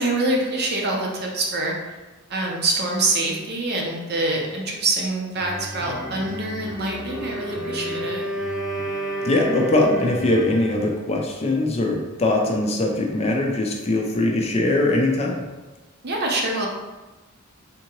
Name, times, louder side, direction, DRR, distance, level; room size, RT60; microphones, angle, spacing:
voice 1, 0.0-1.7 2.3-8.2 16.0-16.7, right 2 dB, 50° right, -1 dB, 0.6 m, -25 dB
sound 1, 4.8-11.2, right 1 dB, 85° right, 1.4 m, -37 dB
Wind instrument woodwind instrument, 7.0-10.5, right 1 dB, 5° right, 0.9 m, -30 dB
voice 2, 9.2-15.4, left 2 dB, 30° left, 0 dB, 0.4 m, -21 dB
3.6 x 2.8 x 2.9 m, 1.2 s
head